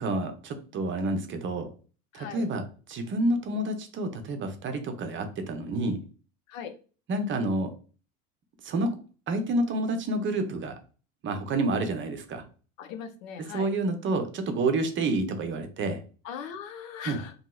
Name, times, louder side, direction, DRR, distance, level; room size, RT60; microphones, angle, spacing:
voice 1, 0.0-1.7 2.1-2.6 2.9-6.0 7.1-7.7 8.6-8.9 9.3-10.7 11.2-12.4 13.5-16.0 17.1-17.2, right 2 dB, 30° right, 6 dB, 0.6 m, -29 dB
voice 2, 2.1-2.5 6.5-6.8 12.8-13.7 16.2-17.3, left 7 dB, 75° left, 8 dB, 0.7 m, -39 dB
2.8 x 2.7 x 2.3 m, 0.37 s
hypercardioid pair, 80°, 41 cm